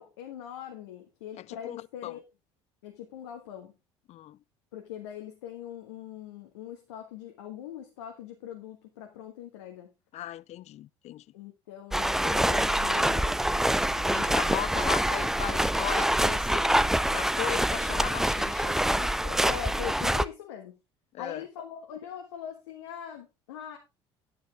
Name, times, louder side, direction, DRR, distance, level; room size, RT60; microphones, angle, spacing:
voice 1, 0.0-2.2 2.8-3.7 4.7-9.9 11.3-13.6 19.4-20.8 21.2-23.8, left 9 dB, 80° left, 1.5 m, -41 dB
voice 2, 1.4-2.2 4.1-4.4 10.1-11.2 14.0-16.7 17.1-19.4 21.1-21.4, left 14 dB, 50° left, 0.5 m, -38 dB
sound 1, 11.9-20.2, right 1 dB, 5° right, 0.5 m, -26 dB
9.6 x 9.4 x 3.4 m
hypercardioid pair, 65°, 14 cm